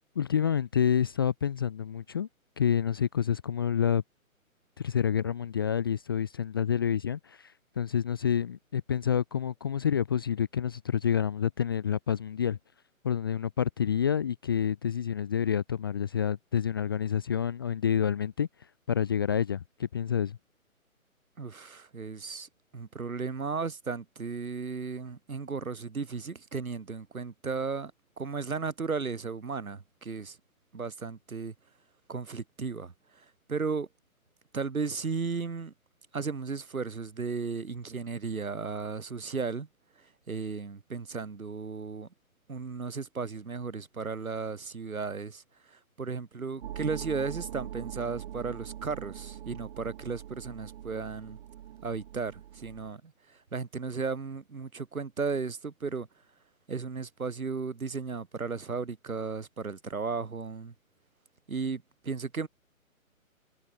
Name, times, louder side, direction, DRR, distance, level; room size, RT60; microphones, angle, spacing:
voice 1, 0.2-2.3 2.6-4.0 4.8-12.6 13.0-18.5 18.9-20.4, left 8 dB, 15° left, 0.6 m, -28 dB
voice 2, 21.4-27.9 28.2-30.4 30.7-31.5 32.1-33.9 34.5-35.7 36.1-39.7 40.0-42.1 42.5-51.4 51.8-56.1 56.7-60.7 61.5-62.5, right 4 dB, 70° right, 4.9 m, -35 dB
sound 1, 46.6-52.9, right 11 dB, 40° right, 7.5 m, -43 dB
figure-of-eight pair, 140°, 43 cm